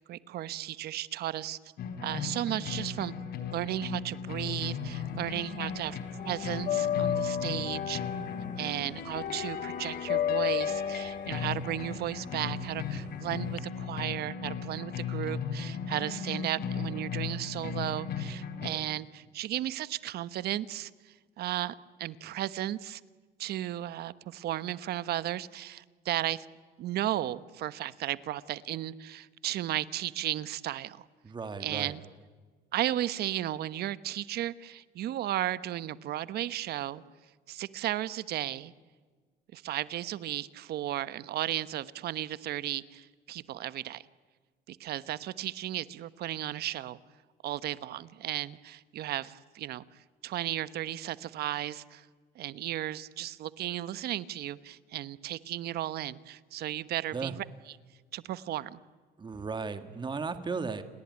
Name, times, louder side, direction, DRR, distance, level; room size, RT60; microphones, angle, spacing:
voice 1, 0.0-1.6 2.0-3.1 3.5-6.0 6.2-8.0 8.6-23.0 23.4-26.5 26.8-31.1 31.6-32.0 32.7-37.0 37.5-38.7 39.5-44.0 44.7-47.0 47.4-52.1 52.3-57.8 58.1-58.8, right 13 dB, 70° right, 16 dB, 1.2 m, -35 dB
sound 1, 1.8-18.7, left 6 dB, 70° left, 4.3 m, -37 dB
sound 2, 4.3-5.4 5.7-13.6, left 9 dB, 50° left, 1.0 m, -33 dB
voice 2, 31.2-32.0 57.1-57.3 59.2-60.8, right 4 dB, 25° right, 10 dB, 2.0 m, -35 dB
29.5 x 20.5 x 9.7 m, 1.5 s
cardioid pair, 110°, 17 cm